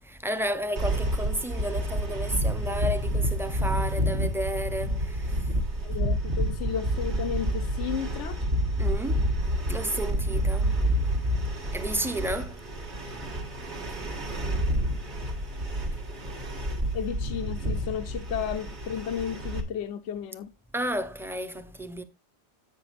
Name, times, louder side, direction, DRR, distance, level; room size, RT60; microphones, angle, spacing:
voice 1, 0.0-5.5 8.8-9.2 9.7-10.7 11.7-12.6 20.7-22.0, right 1 dB, 5° right, 0.6 m, -32 dB
sound 1, 0.8-19.6, equal, 70° right, 2.0 m, -29 dB
voice 2, 5.8-8.4 16.9-20.5, left 9 dB, 80° left, 1.0 m, -33 dB
11.0 x 8.3 x 2.5 m
omnidirectional pair, 1.2 m